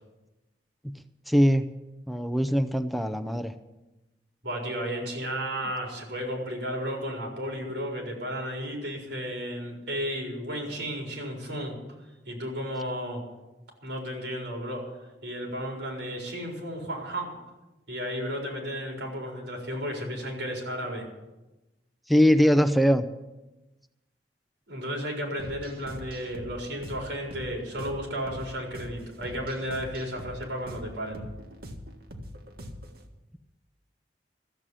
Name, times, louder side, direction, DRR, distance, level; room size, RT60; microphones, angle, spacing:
voice 1, 1.3-1.6 2.1-3.5 22.1-23.0, equal, ahead, 9 dB, 0.5 m, -21 dB
voice 2, 4.4-11.8 12.3-13.2 13.8-14.8 15.2-17.3 17.9-21.0 24.7-31.2, equal, 85° right, 1 dB, 4.4 m, -33 dB
sound 1, 25.4-33.1, equal, 60° right, 1.6 m, -43 dB
13.5 x 7.7 x 9.9 m, 1.0 s
head